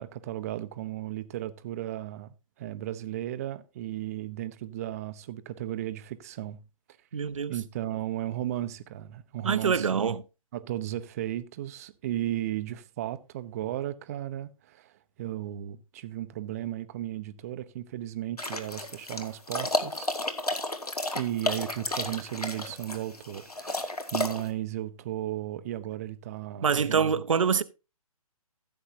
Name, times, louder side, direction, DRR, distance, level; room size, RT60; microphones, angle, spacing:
voice 1, 0.0-6.6 7.5-10.1 10.5-14.9 15.2-20.1 21.1-27.1, right 13 dB, 25° right, 0.7 m, -35 dB
voice 2, 7.1-7.6 9.4-10.2 26.6-27.6, right 6 dB, 60° right, 0.7 m, -25 dB
sound 1, 18.4-24.5, left 2 dB, 85° left, 1.9 m, -32 dB
15.5 x 8.0 x 2.7 m
figure-of-eight pair, 135°, 19 cm